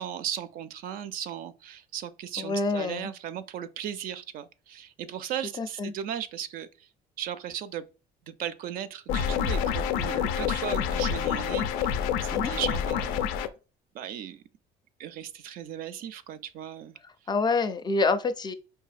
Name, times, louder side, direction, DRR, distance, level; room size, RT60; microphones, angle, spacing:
voice 1, 0.0-6.7 7.2-7.8 8.3-13.2 13.9-14.4 15.0-17.0, right 9 dB, 65° right, 0.4 m, -36 dB
voice 2, 2.4-3.1 5.6-5.9 12.3-12.5 17.3-18.5, left 3 dB, 25° left, 0.4 m, -27 dB
sound 1, 9.1-13.5, left 8 dB, 85° left, 0.4 m, -27 dB
4.7 x 2.6 x 2.4 m
cardioid pair, 100°, 16 cm